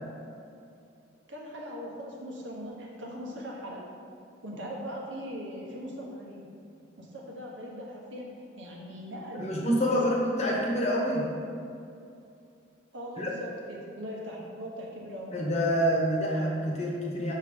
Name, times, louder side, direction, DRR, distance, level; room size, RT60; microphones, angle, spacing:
voice 1, 1.3-3.9 4.4-6.5 7.0-8.3 8.6-10.2 10.5-10.9 12.9-15.3, equal, 75° right, -2 dB, 1.2 m, -40 dB
voice 2, 9.4-11.2 13.2-13.3 15.3-17.3, equal, 35° left, -2 dB, 1.1 m, -27 dB
6.4 x 5.6 x 3.7 m, 2.5 s
head